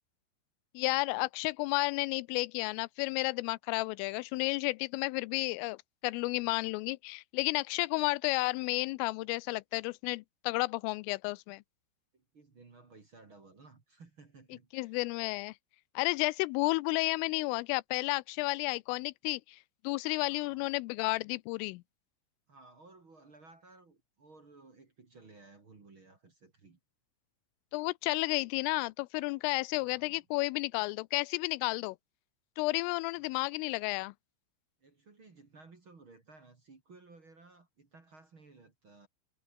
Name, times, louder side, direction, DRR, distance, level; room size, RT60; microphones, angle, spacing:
voice 1, 0.7-11.6 14.7-15.5 16.0-19.6 19.8-21.8 27.7-32.0 32.6-34.1, left 24 dB, 85° left, 3.2 m, -32 dB
voice 2, 12.1-15.0 20.3-20.8 22.5-26.8 29.8-30.3 33.2-33.3 34.8-39.1, right 3 dB, 30° right, 2.9 m, -57 dB
omnidirectional pair, 5.7 m